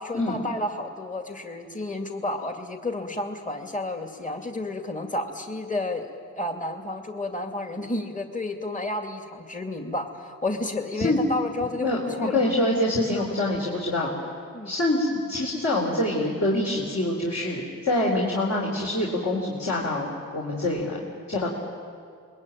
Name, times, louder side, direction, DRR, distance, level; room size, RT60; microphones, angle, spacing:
voice 1, 0.0-6.1 6.3-12.4 14.5-14.8, left 2 dB, 25° left, 4 dB, 2.4 m, -31 dB
voice 2, 11.8-14.1 14.6-21.5, left 1 dB, 50° left, -3 dB, 4.5 m, -25 dB
25.0 x 21.5 x 9.2 m, 2.2 s
cardioid pair, 60°, 33 cm